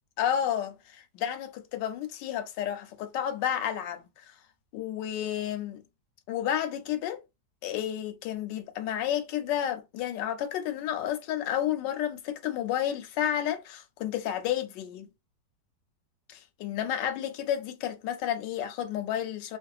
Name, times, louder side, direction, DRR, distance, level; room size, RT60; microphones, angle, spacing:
voice 1, 0.2-4.1 4.7-5.8 6.3-7.2 7.6-15.1 16.3-19.6, left 10 dB, 90° left, 1.3 m, -31 dB
3.0 x 2.5 x 2.3 m
omnidirectional pair, 1.9 m